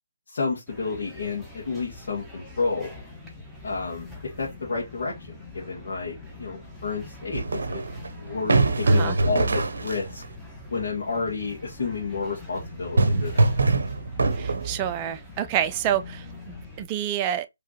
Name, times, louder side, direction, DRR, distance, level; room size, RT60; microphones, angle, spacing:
voice 1, 0.3-2.9 3.6-7.8 8.1-10.2 10.7-13.5, left 4 dB, 55° left, 1.9 m, -31 dB
sound 1, 0.7-16.9, left 2 dB, ahead, 1.3 m, -44 dB
sound 2, 7.3-10.3 12.6-15.0, right 2 dB, 65° right, 0.7 m, -23 dB
voice 2, 14.3-17.5, right 10 dB, 25° right, 0.5 m, -28 dB
4.7 x 3.4 x 2.9 m
figure-of-eight pair, 145°, 0 cm